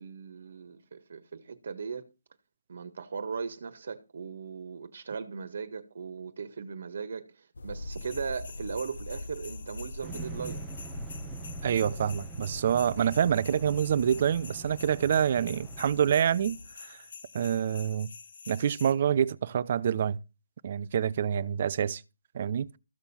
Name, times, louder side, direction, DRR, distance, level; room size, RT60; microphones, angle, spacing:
voice 1, 0.0-2.1 2.7-10.6, right 5 dB, 60° right, 1.6 m, -38 dB
sound 1, 7.5-16.7, left 1 dB, 80° left, 1.1 m, -43 dB
sound 2, 7.9-18.9, left 5 dB, 60° left, 2.3 m, -48 dB
sound 3, 10.0-16.1, right 9 dB, 10° right, 0.9 m, -46 dB
voice 2, 11.6-16.6 16.9-17.0 17.3-18.1 18.5-20.2 20.6-22.0 22.3-22.7, right 8 dB, 40° right, 0.7 m, -26 dB
14.5 x 7.1 x 5.8 m
hypercardioid pair, 160°, 0 cm